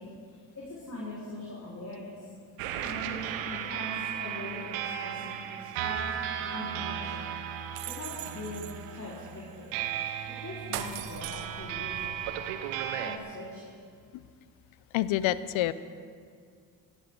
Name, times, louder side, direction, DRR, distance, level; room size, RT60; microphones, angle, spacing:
voice 1, 0.0-2.2 2.8-6.0 6.5-7.3 7.8-9.7 10.4-12.1 13.0-13.7, left 1 dB, 35° left, -7 dB, 4.4 m, -41 dB
sound 1, 2.6-13.2, right 9 dB, 90° right, 0.8 m, -35 dB
voice 2, 14.9-15.7, left 14 dB, 75° left, 16 dB, 0.7 m, -27 dB
17.0 x 14.5 x 3.8 m, 2.1 s
supercardioid pair, 50°, 48 cm